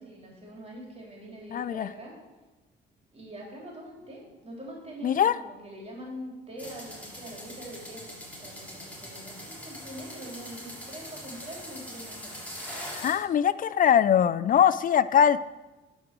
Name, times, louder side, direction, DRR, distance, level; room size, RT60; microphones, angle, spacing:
voice 1, 0.0-2.2 3.1-12.4, right 1 dB, 30° right, -2 dB, 3.7 m, -44 dB
voice 2, 1.5-1.9 5.0-5.3 13.0-15.4, left 9 dB, 45° left, 17 dB, 0.4 m, -22 dB
sound 1, 6.6-13.1, equal, 5° left, 3.4 m, -42 dB
10.5 x 5.2 x 6.1 m, 1.1 s
cardioid pair, 90°, 20 cm